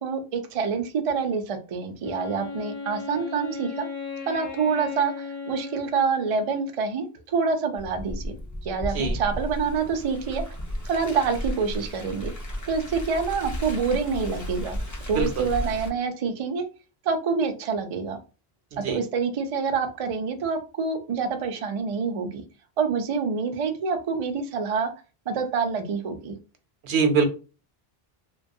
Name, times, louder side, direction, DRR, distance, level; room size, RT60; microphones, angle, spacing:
voice 1, 0.0-3.9 4.3-8.4 8.6-10.4 10.8-12.3 12.7-14.8 15.1-16.6 17.0-18.2 18.7-22.4 22.8-24.9 25.3-26.3, right 5 dB, 50° right, 5 dB, 0.4 m, -27 dB
Wind instrument woodwind instrument, 2.0-6.8, left 4 dB, 65° left, 0.8 m, -36 dB
Car, 7.8-15.9, equal, 30° left, 0.4 m, -33 dB
voice 2, 15.1-15.5 18.7-19.0 26.8-27.2, right 5 dB, 80° right, 6 dB, 0.9 m, -23 dB
2.9 x 2.2 x 2.6 m, 0.33 s
omnidirectional pair, 1.1 m